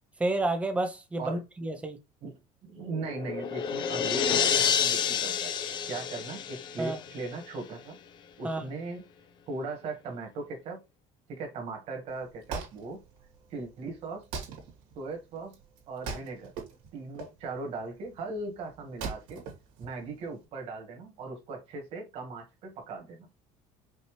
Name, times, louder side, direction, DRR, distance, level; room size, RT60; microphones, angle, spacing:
voice 1, 0.2-2.0 6.8-7.0 8.4-8.7, right 2 dB, 10° right, 0.7 m, -30 dB
voice 2, 2.6-5.5 5.9-8.0 8.4-9.0 9.5-10.8 11.3-13.0 13.5-14.2 15.0-15.5 15.9-16.5 16.9-19.4 19.8-23.3, right 3 dB, 50° right, 1.9 m, -38 dB
sound 1, 2.9-7.5, left 8 dB, 35° left, 0.5 m, -29 dB
Wood, 12.1-20.4, right 5 dB, 85° right, 2.3 m, -42 dB
5.3 x 2.9 x 3.2 m
cardioid pair, 170°, 13 cm